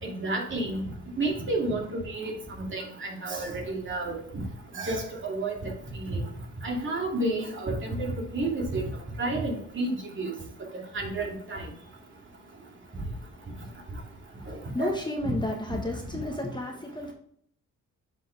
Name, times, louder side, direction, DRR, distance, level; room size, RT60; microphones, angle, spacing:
voice 1, 0.0-0.9 1.2-2.3 2.7-4.2 4.7-5.7 6.0-6.2 6.6-8.8 9.2-10.3 10.9-11.6 14.5-14.9, right 2 dB, 40° right, 0 dB, 2.4 m, -30 dB
voice 2, 14.4-17.1, left 2 dB, 15° left, 2 dB, 1.3 m, -32 dB
7.9 x 5.4 x 3.3 m, 0.63 s
cardioid pair, 90°, 30 cm